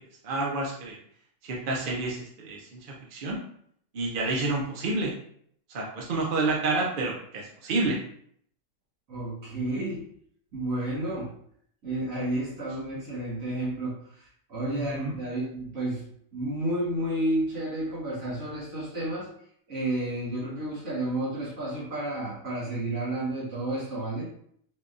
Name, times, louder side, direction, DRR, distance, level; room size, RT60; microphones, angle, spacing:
voice 1, 0.2-1.0 1.4-3.4 3.9-5.1 5.7-8.0 14.8-15.2, right 3 dB, 55° right, -2 dB, 0.6 m, -29 dB
voice 2, 9.1-10.0 10.5-11.3 11.8-16.0 16.3-19.3 19.7-24.3, right 1 dB, 75° right, -8 dB, 2.0 m, -31 dB
4.6 x 2.3 x 2.5 m, 0.65 s
omnidirectional pair, 1.4 m